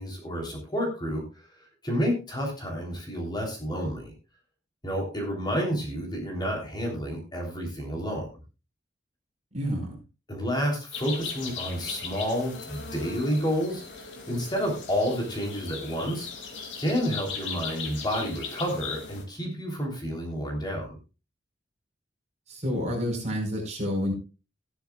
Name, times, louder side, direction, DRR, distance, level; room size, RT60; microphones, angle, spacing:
voice 1, 0.0-1.5 1.8-4.1 4.8-8.3 10.3-16.3 16.8-21.0, equal, 25° left, 1 dB, 3.5 m, -30 dB
voice 2, 9.5-10.0 22.5-24.1, equal, 35° right, 1 dB, 4.9 m, -29 dB
sound 1, 10.9-19.2, left 5 dB, 75° left, 2.7 m, -38 dB
15.0 x 12.5 x 2.4 m, 0.31 s
head